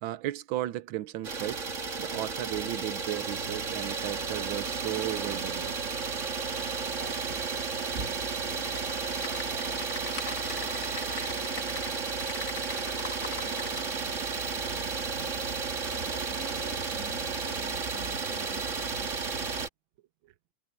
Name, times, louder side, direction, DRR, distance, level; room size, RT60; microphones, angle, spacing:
voice 1, 0.0-1.6 2.0-5.8, right 14 dB, 70° right, 1.5 m, -35 dB
Idling, 1.2-19.7, right 5 dB, 35° right, 1.9 m, -33 dB
voice 2, 8.2-9.2 9.5-10.0 10.5-12.0 12.7-15.4 15.8-19.1, equal, 5° left, 6.0 m, -50 dB
Typing, 8.7-13.8, left 5 dB, 35° left, 1.8 m, -41 dB
omnidirectional pair, 2.3 m